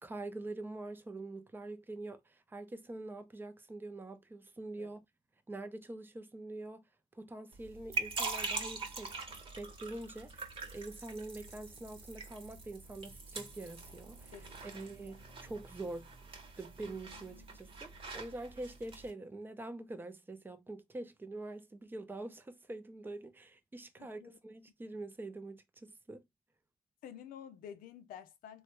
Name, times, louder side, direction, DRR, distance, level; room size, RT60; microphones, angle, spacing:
voice 1, 0.0-5.0 5.5-6.8 7.1-9.2 9.6-10.4 10.7-16.1 16.6-26.2, right 2 dB, 15° right, 0.6 m, -45 dB
sound 1, 7.5-19.1, right 4 dB, 40° right, 1.0 m, -43 dB
voice 2, 14.3-15.1 24.0-24.3 27.0-28.6, left 9 dB, 75° left, 0.5 m, -51 dB
3.2 x 2.3 x 3.0 m
cardioid pair, 90°, 15 cm